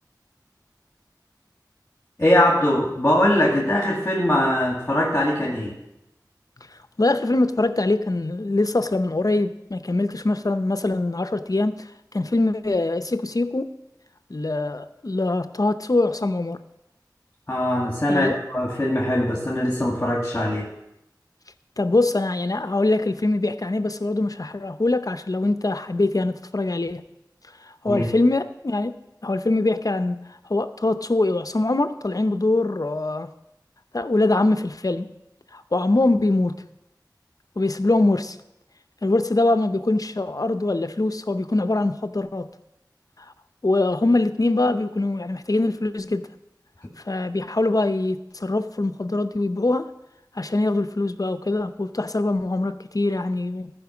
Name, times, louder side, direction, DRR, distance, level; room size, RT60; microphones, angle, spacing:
voice 1, 2.2-5.8 17.5-20.7 27.9-28.1, left 1 dB, 30° left, -3 dB, 1.9 m, -21 dB
voice 2, 7.0-11.8 12.1-13.7 14.3-16.6 18.1-18.4 21.8-27.0 27.8-28.9 29.2-33.3 33.9-35.1 35.5-36.6 37.6-38.4 39.0-42.5 43.6-46.3 47.1-49.9 50.4-53.7, left 2 dB, 55° left, 11 dB, 0.6 m, -23 dB
14.5 x 5.1 x 6.1 m, 0.89 s
wide cardioid pair, 40°, 7 cm